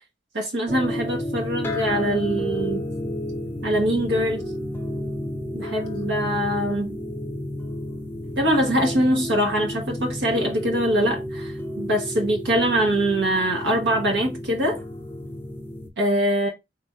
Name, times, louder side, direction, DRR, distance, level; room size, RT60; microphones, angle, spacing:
voice 1, 0.3-2.8 3.6-4.5 5.5-7.0 8.4-14.8 16.0-16.5, right 1 dB, 70° right, 1.0 m, -23 dB
sound 1, 0.7-15.9, left 1 dB, 10° left, 0.6 m, -31 dB
3.4 x 2.5 x 3.3 m
head